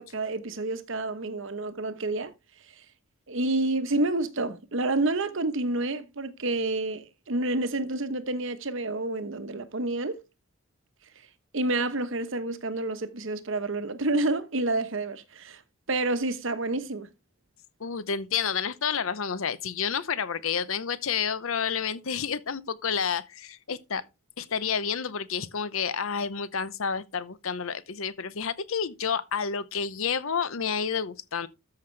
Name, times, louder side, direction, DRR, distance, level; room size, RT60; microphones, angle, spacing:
voice 1, 0.0-2.3 2.6-2.8 3.3-10.2 11.2-11.3 11.5-15.6 15.9-17.1, right 2 dB, 60° right, 1.0 m, -29 dB
voice 2, 17.8-24.0 24.4-31.5, left 6 dB, 70° left, 0.7 m, -30 dB
13.5 x 5.8 x 3.3 m
head